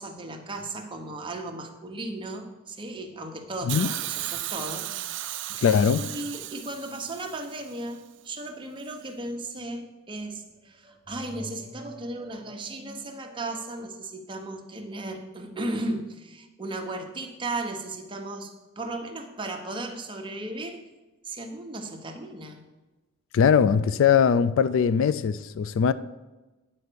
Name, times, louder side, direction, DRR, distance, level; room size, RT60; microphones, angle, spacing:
voice 1, 0.0-5.6 6.0-20.8 21.2-22.6, right 2 dB, 25° right, 0.9 m, -36 dB
Hiss, 3.7-7.8 8.8-8.9, right 14 dB, 60° right, 0.4 m, -35 dB
voice 2, 5.6-6.1 23.3-25.9, left 7 dB, 65° left, 0.3 m, -21 dB
9.5 x 4.5 x 6.8 m
head